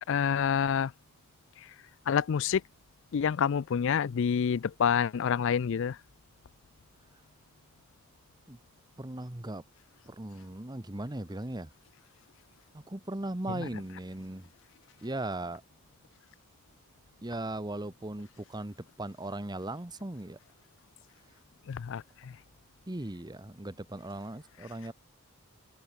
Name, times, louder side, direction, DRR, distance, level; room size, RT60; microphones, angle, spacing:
voice 1, 0.1-0.9 2.1-2.6 3.1-6.0 21.7-22.3, left 7 dB, 60° left, 0.4 m, -27 dB
voice 2, 9.0-9.6 10.0-11.7 12.7-14.5 15.0-15.6 17.2-20.4 22.9-24.9, right 1 dB, 20° right, 1.1 m, -38 dB
head